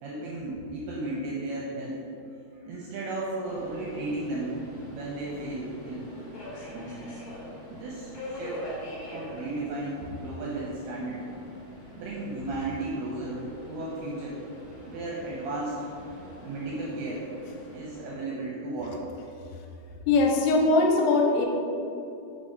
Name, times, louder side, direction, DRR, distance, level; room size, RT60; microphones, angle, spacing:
voice 1, 0.0-2.0 2.6-4.6 4.9-6.1 6.7-7.1 7.7-8.7 9.1-11.2 12.0-14.4 14.9-15.9 16.4-17.3 17.7-19.0, right 2 dB, 80° right, -4 dB, 2.4 m, -34 dB
Subway metro underground, 3.4-18.0, left 1 dB, 60° left, 2.0 m, -44 dB
voice 2, 20.1-21.5, left 3 dB, 85° left, 0 dB, 3.0 m, -21 dB
6.2 x 3.9 x 5.2 m, 2.7 s
omnidirectional pair, 5.4 m